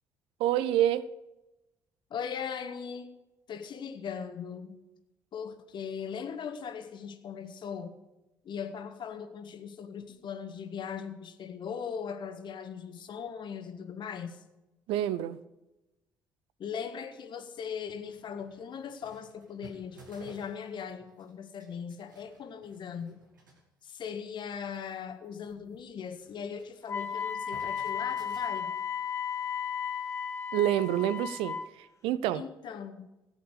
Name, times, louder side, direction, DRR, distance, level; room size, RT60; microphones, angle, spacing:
voice 1, 0.4-1.1 14.9-15.4 30.5-32.4, right 12 dB, 65° right, 17 dB, 0.6 m, -28 dB
voice 2, 2.1-3.1 3.5-4.8 5.3-7.9 8.4-14.4 16.6-23.2 23.8-28.7 32.3-33.1, left 7 dB, 50° left, 8 dB, 1.5 m, -39 dB
sound 1, 17.0-17.1 17.6-17.7 17.9-21.3 21.6-23.6 23.9-24.1 24.4-24.5 24.7-26.8 27.0-29.7, right 3 dB, 90° right, 1.7 m, -56 dB
Wind instrument woodwind instrument, 26.9-31.7, left 7 dB, 30° left, 1.8 m, -34 dB
15.0 x 8.3 x 6.7 m, 0.99 s
figure-of-eight pair, 50°, 10 cm